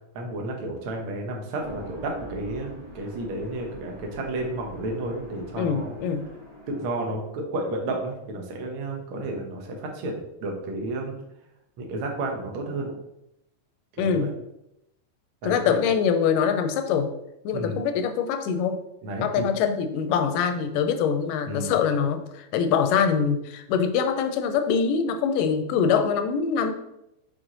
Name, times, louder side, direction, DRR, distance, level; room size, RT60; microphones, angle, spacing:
voice 1, 0.1-6.0 6.7-11.2 11.8-12.9 14.0-14.3 15.4-15.8 17.5-17.8 19.0-19.4 21.5-21.7, right 2 dB, 65° right, 1 dB, 1.3 m, -32 dB
sound 1, 1.5-7.1, equal, 20° right, 0.6 m, -42 dB
voice 2, 5.6-6.3 14.0-14.3 15.4-17.1 17.5-18.8 19.2-26.7, left 6 dB, 85° left, 8 dB, 2.1 m, -24 dB
6.1 x 4.6 x 3.8 m, 0.83 s
omnidirectional pair, 3.9 m